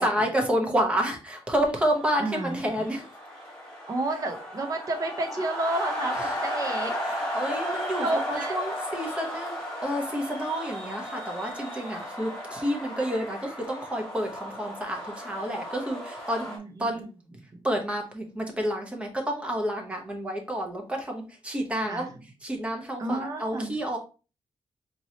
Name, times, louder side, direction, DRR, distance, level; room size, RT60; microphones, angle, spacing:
voice 1, 0.0-3.1 6.2-6.4 7.0-9.5 9.8-16.5 16.8-17.0 17.6-22.1 22.4-24.0, equal, 10° right, 2 dB, 0.9 m, -29 dB
sound 1, 1.8-16.6, equal, 5° left, 1.4 m, -35 dB
voice 2, 2.2-2.6 3.9-7.0 7.7-8.6 16.5-17.1 17.5-17.6 21.8-22.1 23.0-23.8, right 2 dB, 35° right, 3 dB, 0.9 m, -31 dB
4.6 x 3.0 x 2.7 m, 0.33 s
wide cardioid pair, 170°, 10 cm